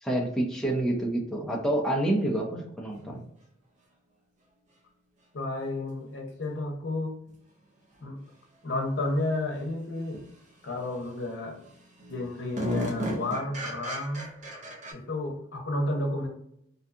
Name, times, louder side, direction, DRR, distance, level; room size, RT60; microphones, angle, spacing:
voice 1, 0.0-3.2, right 1 dB, 5° left, -2 dB, 0.4 m, -28 dB
voice 2, 5.3-7.1 8.0-8.2 8.6-10.2 10.6-11.7 12.1-14.3 14.9-16.3, left 2 dB, 85° left, 1 dB, 0.7 m, -31 dB
sound 1, 7.3-7.4 10.1-10.3 10.7-11.2 11.6-11.7 12.0-14.9, equal, 40° right, 0.6 m, -34 dB
2.6 x 2.3 x 2.4 m, 0.73 s
head